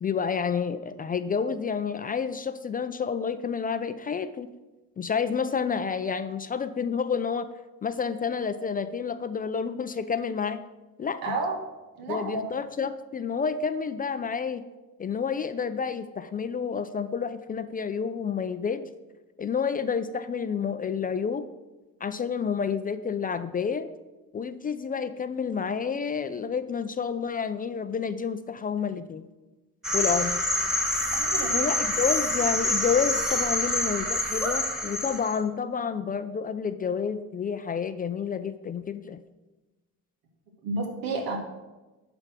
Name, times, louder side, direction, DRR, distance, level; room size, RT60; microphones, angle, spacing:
voice 1, 0.0-4.5 5.0-7.5 7.8-10.6 11.0-11.3 12.1-14.6 15.0-18.8 19.4-21.5 22.0-23.9 24.3-29.2 29.9-30.4 31.5-39.2, left 6 dB, 25° left, 11 dB, 0.4 m, -29 dB
voice 2, 11.2-11.6 11.9-12.6 31.1-31.6 40.6-41.4, right 3 dB, 80° right, 1 dB, 2.0 m, -31 dB
Frog Forest, 29.8-35.4, left 1 dB, ahead, 1.5 m, -26 dB
10.5 x 3.5 x 6.0 m, 1.1 s
cardioid pair, 100°, 34 cm